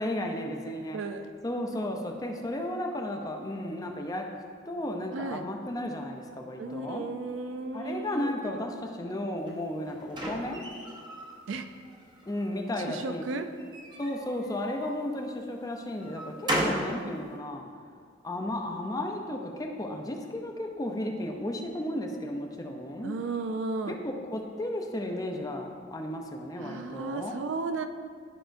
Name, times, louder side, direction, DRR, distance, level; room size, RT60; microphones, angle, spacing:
voice 1, 0.0-1.0 1.4-4.3 4.7-7.0 7.7-10.6 12.3-13.2 14.0-17.6 18.2-23.1 23.9-24.0 24.3-27.4, left 1 dB, 20° left, 2 dB, 0.5 m, -34 dB
voice 2, 0.9-1.3 5.1-5.5 6.6-8.3 11.5-11.7 12.8-13.5 23.0-24.0 26.5-27.9, right 3 dB, 70° right, 8 dB, 0.4 m, -34 dB
sound 1, 9.5-11.4 11.9-12.6 13.6-15.1 15.6-17.0, right 1 dB, 25° right, 0.7 m, -35 dB
11.0 x 5.0 x 2.6 m, 2.1 s
head